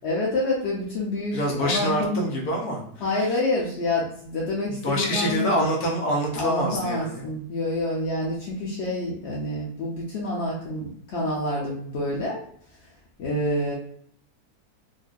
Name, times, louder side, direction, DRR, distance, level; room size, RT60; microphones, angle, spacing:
voice 1, 0.0-2.2 3.0-5.6 6.4-12.4 13.2-13.7, left 1 dB, 55° left, -5 dB, 0.8 m, -27 dB
voice 2, 1.3-2.8 4.7-7.2, equal, 75° left, -1 dB, 1.3 m, -25 dB
4.0 x 2.6 x 2.4 m, 0.62 s
omnidirectional pair, 1.7 m